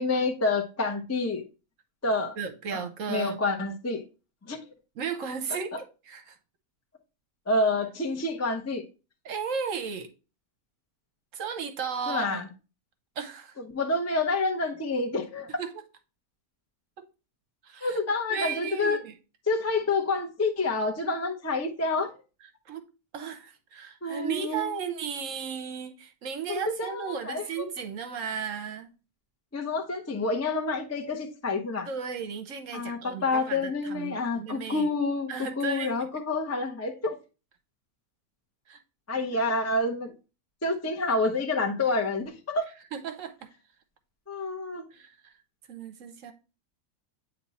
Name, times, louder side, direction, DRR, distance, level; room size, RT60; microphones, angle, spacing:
voice 1, 0.0-1.4 2.0-2.4 2.7-2.8 3.1-4.0 4.5-4.6 7.5-8.8 12.1-12.5 13.7-15.5 17.8-19.0 19.5-22.1 24.0-24.7 26.5-27.6 29.5-31.9 32.7-37.1 39.1-40.1 40.6-42.7 44.3-44.8, left 3 dB, 20° left, 0.5 m, -28 dB
voice 2, 2.4-3.4 5.0-6.4 9.2-10.1 11.3-12.4 13.2-13.5 15.6-15.8 17.0-17.1 17.6-18.0 18.3-19.1 22.7-22.8 23.1-28.9 31.9-34.9 35.3-36.1 38.7-38.8 42.9-43.3 44.9-45.3 45.7-46.3, right 6 dB, 65° right, 1.0 m, -35 dB
8.4 x 3.0 x 4.1 m
omnidirectional pair, 1.6 m